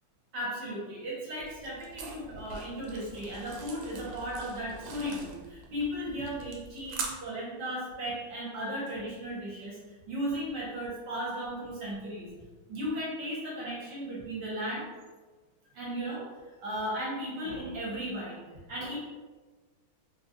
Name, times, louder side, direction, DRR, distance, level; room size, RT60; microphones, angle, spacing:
voice 1, 0.3-9.8 10.1-12.3 12.7-14.8 15.7-16.2 16.6-18.4 18.7-19.0, equal, 60° right, -6 dB, 1.4 m, -36 dB
sound 1, 1.4-7.1, right 4 dB, 90° right, 1.5 m, -43 dB
4.1 x 2.3 x 2.7 m, 1.3 s
omnidirectional pair, 2.3 m